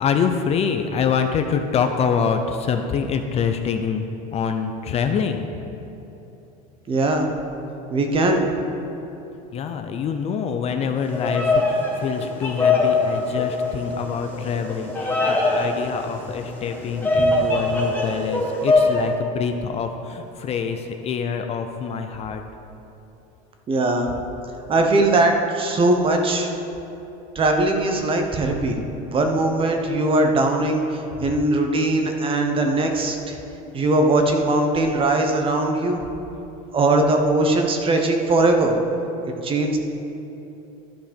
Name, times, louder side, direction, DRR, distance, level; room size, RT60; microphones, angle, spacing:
voice 1, 0.0-5.5 9.5-22.4, left 6 dB, 35° left, 6 dB, 0.6 m, -25 dB
voice 2, 6.9-7.3 7.9-8.5 23.7-24.1 24.7-26.5 27.3-28.8 29.1-33.4 33.7-36.0 36.7-38.8 39.4-39.8, right 2 dB, 30° right, 4 dB, 1.1 m, -20 dB
Bird vocalization bird call bird song, 11.0-19.0, left 2 dB, 10° left, 1.7 m, -22 dB
12.0 x 5.0 x 5.3 m, 3.0 s
supercardioid pair, 120°, 19 cm